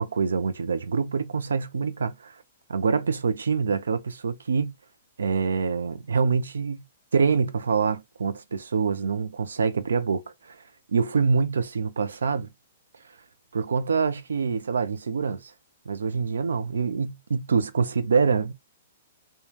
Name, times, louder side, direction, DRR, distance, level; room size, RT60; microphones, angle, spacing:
voice 1, 0.0-2.4 2.7-4.7 5.2-6.8 7.1-10.6 10.9-12.5 13.5-15.5 15.9-18.5, right 5 dB, 85° right, 0.4 m, -25 dB
3.2 x 2.2 x 2.2 m
hypercardioid pair, 130°, 0 cm